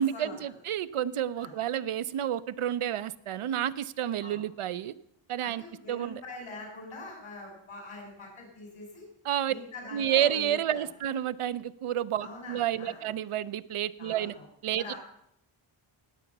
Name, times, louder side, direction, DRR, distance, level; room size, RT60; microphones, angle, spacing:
voice 1, 0.0-4.9 5.3-6.2 9.2-9.5 9.9-14.3 14.6-14.9, right 10 dB, 85° right, 15 dB, 0.7 m, -30 dB
voice 2, 5.4-9.0 9.5-10.8 12.2-13.1 14.0-14.5 14.8-15.0, left 2 dB, 85° left, 0 dB, 6.3 m, -43 dB
18.0 x 8.4 x 6.0 m, 0.74 s
wide cardioid pair, 140°, 50 cm